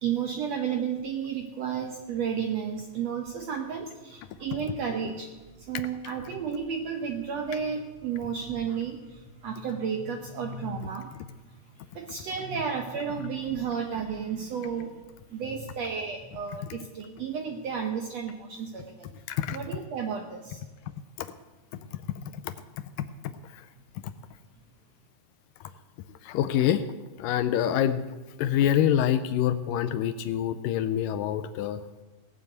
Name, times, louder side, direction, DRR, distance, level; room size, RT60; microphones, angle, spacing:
voice 1, 0.0-5.3 5.6-11.6 11.9-14.9 15.3-19.1 19.5-20.6, right 7 dB, 70° right, 4 dB, 1.6 m, -32 dB
voice 2, 19.3-19.6 21.2-21.3 22.2-22.5 23.0-23.1 23.5-23.6 24.0-24.1 26.2-26.9 27.2-28.1 28.4-31.8, left 10 dB, 80° left, 12 dB, 2.1 m, -26 dB
18.0 x 7.5 x 7.9 m, 1.2 s
omnidirectional pair, 4.1 m